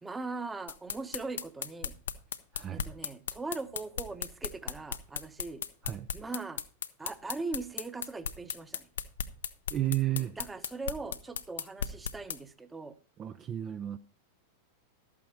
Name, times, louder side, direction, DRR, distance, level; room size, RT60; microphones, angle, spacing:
voice 1, 0.0-1.9 2.7-5.6 6.1-6.6 7.0-8.9 10.4-12.9, right 3 dB, 10° right, 0.9 m, -40 dB
sound 1, 0.7-12.4, left 7 dB, 65° left, 0.7 m, -36 dB
voice 2, 2.5-2.9 5.8-6.1 9.7-10.4 13.2-14.0, right 13 dB, 30° right, 0.5 m, -32 dB
12.5 x 8.6 x 4.3 m
figure-of-eight pair, 90°, 0 cm